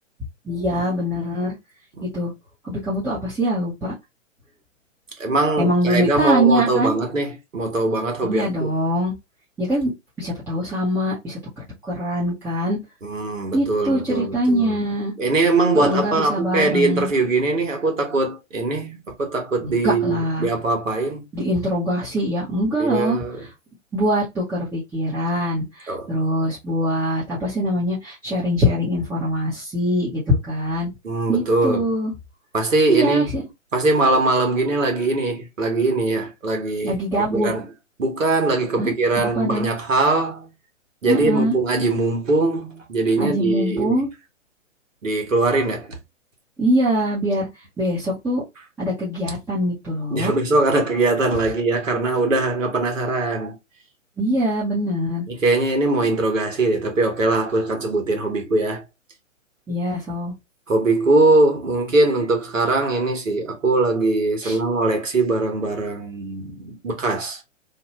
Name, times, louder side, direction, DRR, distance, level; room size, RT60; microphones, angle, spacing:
voice 1, 0.4-1.5 2.1-2.3 2.6-3.9 5.6-6.9 8.2-9.1 9.6-9.9 10.2-11.4 11.8-12.8 13.5-15.1 15.7-17.1 19.6-20.5 21.3-23.2 23.9-30.9 31.3-32.1 32.9-33.4 36.8-37.5 38.8-38.9 39.3-39.7 41.1-41.6 43.2-44.1 46.6-47.5 47.8-48.4 48.8-50.3 54.2-55.2 59.7-60.3 64.4-64.6, equal, 5° right, 0.7 m, -23 dB
voice 2, 5.2-8.7 13.0-14.8 15.2-21.2 22.8-23.4 25.9-26.1 31.0-31.9 32.5-33.3 33.7-37.0 37.3-37.6 38.0-40.5 41.0-44.0 45.0-46.0 50.1-53.6 55.3-58.8 60.7-67.4, right 2 dB, 75° right, 1.3 m, -21 dB
2.9 x 2.2 x 3.0 m
figure-of-eight pair, 125°, 39 cm